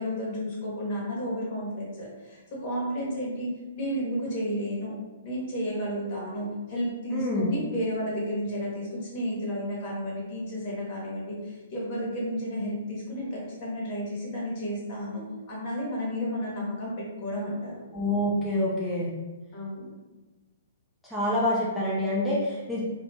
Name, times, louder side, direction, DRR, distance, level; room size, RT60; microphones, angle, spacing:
voice 1, 0.0-17.8 19.5-19.9, equal, 45° left, -5 dB, 1.1 m, -32 dB
voice 2, 7.1-7.5 17.9-19.1 21.0-22.8, left 1 dB, ahead, -8 dB, 0.5 m, -26 dB
2.5 x 2.1 x 2.8 m, 1.2 s
hypercardioid pair, 125°, 0 cm